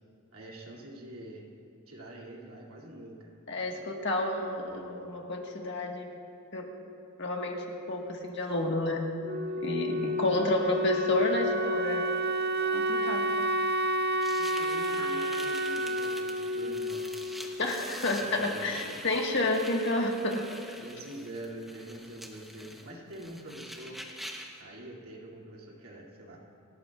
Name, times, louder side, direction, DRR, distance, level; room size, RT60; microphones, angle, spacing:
voice 1, 0.3-1.4 1.9-3.3 14.4-17.1 18.2-19.0 20.8-24.0 24.6-26.4, right 1 dB, 75° right, -4 dB, 2.6 m, -45 dB
voice 2, 3.5-6.1 6.5-6.7 7.2-9.0 9.6-12.0 12.7-13.4 15.0-15.1 17.6-20.4, left 2 dB, 50° left, 1 dB, 1.6 m, -30 dB
Wind instrument woodwind instrument, 9.2-17.9, right 1 dB, 45° right, 0.5 m, -30 dB
sound 1, 14.2-24.6, equal, ahead, 0.9 m, -45 dB
29.0 x 13.5 x 2.5 m, 2.5 s
head